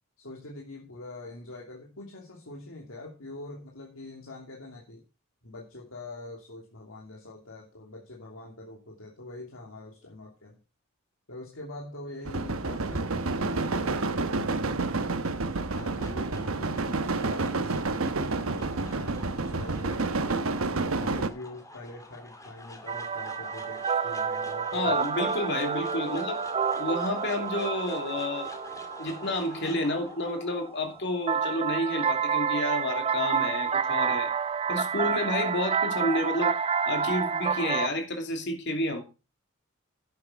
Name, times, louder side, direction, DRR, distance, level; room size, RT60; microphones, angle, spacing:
voice 1, 0.2-5.0 5.4-10.6 11.3-15.2 15.6-20.5 21.0-24.9, left 2 dB, 75° left, -2 dB, 2.9 m, -44 dB
sound 1, 12.2-21.3, right 3 dB, 85° right, 1.1 m, -29 dB
sound 2, 15.7-33.7, left 2 dB, 15° left, 2.2 m, -48 dB
sound 3, 22.9-30.3 31.3-37.9, right 6 dB, 30° right, 0.7 m, -29 dB
voice 2, 24.7-26.4 26.7-28.5 29.0-34.3 34.7-36.5 36.9-39.0, left 1 dB, 60° left, 4 dB, 2.9 m, -30 dB
10.5 x 8.7 x 5.1 m, 0.31 s
head